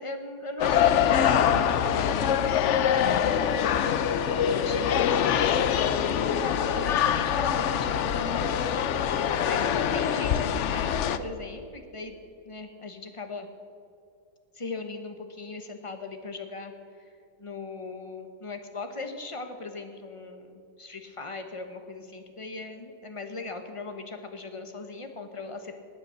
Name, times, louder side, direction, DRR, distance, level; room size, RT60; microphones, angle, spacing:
voice 1, 0.0-5.7 6.4-8.9 9.2-12.2 12.4-13.5 14.5-16.7 17.4-25.8, left 3 dB, 20° left, 6 dB, 0.9 m, -38 dB
Ambiente de corredor no Colégio São Bento, 0.6-11.2, left 9 dB, 75° left, 0.6 m, -24 dB
18.0 x 9.2 x 6.6 m, 2.4 s
omnidirectional pair, 2.0 m